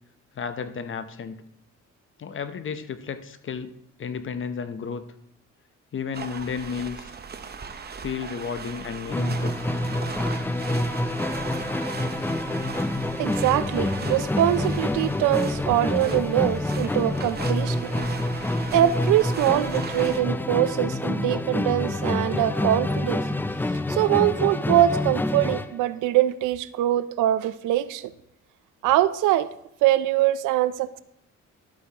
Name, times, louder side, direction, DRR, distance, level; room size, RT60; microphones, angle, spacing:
voice 1, 0.3-1.4 2.2-3.7 4.0-5.0 5.9-7.1 8.0-9.6, left 6 dB, 40° left, 0.8 m, -32 dB
sound 1, 6.1-20.2, right 5 dB, 35° right, 0.8 m, -38 dB
Musical instrument, 9.1-25.8, left 1 dB, 5° left, 0.3 m, -27 dB
voice 2, 13.2-18.0 18.7-23.2 23.9-28.1 28.8-29.5 29.8-31.0, right 13 dB, 85° right, 0.5 m, -23 dB
12.5 x 8.1 x 2.9 m
cardioid pair, 90°, 30 cm